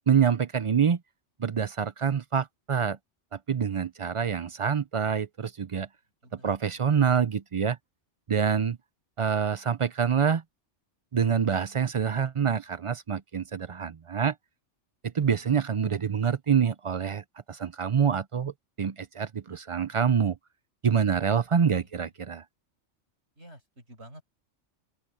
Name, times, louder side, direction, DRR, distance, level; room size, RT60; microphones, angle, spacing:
voice 1, 0.1-1.0 1.4-3.0 3.3-5.9 6.3-7.8 8.3-8.8 9.2-10.4 11.1-14.3 15.0-18.5 18.8-20.4 20.8-22.4, right 7 dB, 50° right, 0.3 m, -26 dB
voice 2, 6.2-6.8 21.7-22.0 23.4-24.2, right 1 dB, 65° right, 7.2 m, -51 dB
open air
omnidirectional pair, 1.2 m